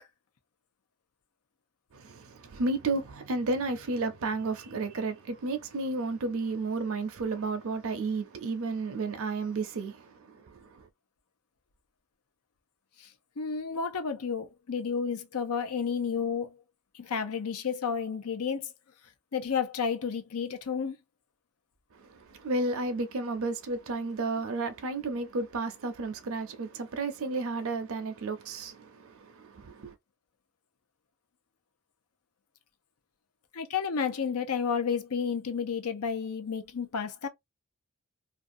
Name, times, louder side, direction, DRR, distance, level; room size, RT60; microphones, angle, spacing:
voice 1, 1.9-10.8 22.3-29.9, right 3 dB, 70° right, 0.5 m, -32 dB
voice 2, 13.4-16.5 17.0-18.6 19.3-20.9 33.5-37.3, left 6 dB, 85° left, 0.6 m, -31 dB
2.5 x 2.3 x 2.5 m
head